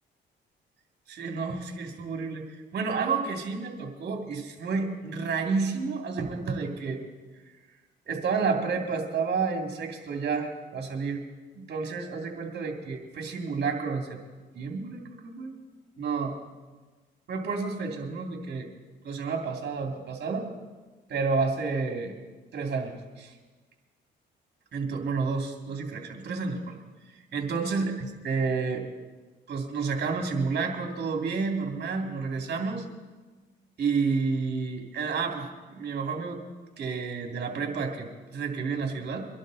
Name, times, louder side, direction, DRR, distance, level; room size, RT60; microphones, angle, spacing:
voice 1, 1.1-2.5 2.7-7.0 8.1-11.2 11.5-14.2 14.5-15.5 16.0-16.3 17.3-18.7 19.0-20.5 21.1-22.1 22.5-23.3 24.7-26.8 27.3-28.8 29.5-32.8 33.8-36.4 36.8-39.3, right 4 dB, 55° right, 2 dB, 2.8 m, -30 dB
23.5 x 11.5 x 4.1 m, 1.3 s
cardioid pair, 90°, 20 cm